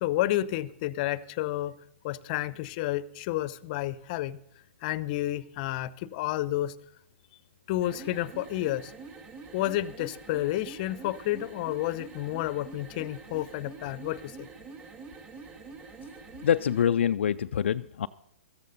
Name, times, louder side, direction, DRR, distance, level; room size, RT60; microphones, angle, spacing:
voice 1, 0.0-1.7 2.0-4.4 4.8-6.7 7.7-8.9 9.5-14.5, left 15 dB, 45° left, 18 dB, 0.7 m, -30 dB
sound 1, 7.7-16.9, right 4 dB, 25° right, 3.8 m, -46 dB
voice 2, 16.4-18.1, left 9 dB, 70° left, 9 dB, 0.4 m, -25 dB
17.0 x 13.5 x 4.0 m, 0.77 s
hypercardioid pair, 130°, 7 cm